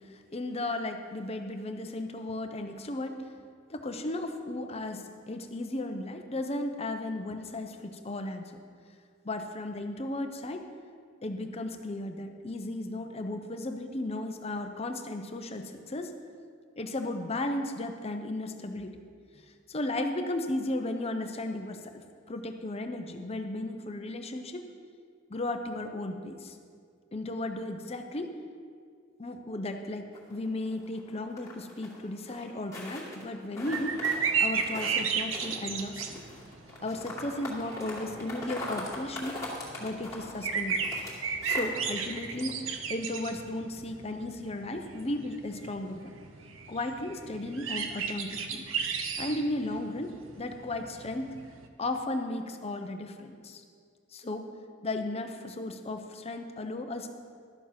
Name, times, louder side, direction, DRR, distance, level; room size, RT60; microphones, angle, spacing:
voice 1, 0.0-3.3 3.7-8.6 9.2-10.7 11.2-16.1 16.8-19.0 19.3-24.6 25.3-26.6 27.1-28.3 29.2-34.0 34.4-36.2 36.8-39.4 39.8-40.9 41.5-46.1 46.7-48.6 49.2-51.4 51.8-53.6 54.1-54.5 54.8-57.1, left 2 dB, 30° left, 6 dB, 0.7 m, -35 dB
sound 1, 30.1-32.0 32.3-33.2 33.5-35.0 35.3-41.1 41.4-41.7 42.1-42.5, left 2 dB, 15° left, 2.3 m, -41 dB
sound 2, 33.7-51.7, right 6 dB, 85° right, 0.8 m, -35 dB
12.0 x 7.0 x 5.9 m, 2.2 s
head